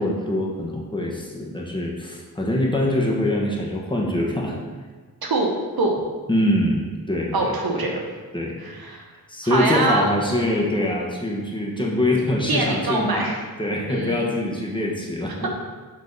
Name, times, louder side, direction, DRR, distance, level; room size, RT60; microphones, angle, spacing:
voice 1, 0.0-4.6 6.3-7.6 8.3-8.6 9.3-15.5, left 1 dB, 15° left, -2 dB, 1.3 m, -24 dB
voice 2, 5.2-5.5 5.8-5.9 7.3-8.0 8.6-9.0 9.4-10.1 12.5-13.4 13.9-14.3 15.4-15.5, right 2 dB, 75° right, 1 dB, 1.1 m, -23 dB
8.0 x 4.0 x 4.0 m, 1.4 s
wide cardioid pair, 75°, 36 cm